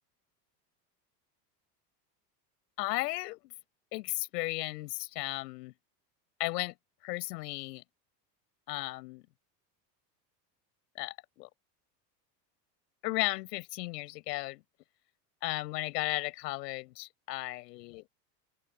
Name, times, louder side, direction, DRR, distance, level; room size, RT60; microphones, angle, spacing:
voice 1, 2.8-3.5 3.9-5.7 6.4-6.8 7.0-7.8 8.7-9.2 11.0-11.5 13.0-14.6 15.4-18.0, left 20 dB, 75° left, 7.6 m, -35 dB
open air
supercardioid pair, 100°, 48 cm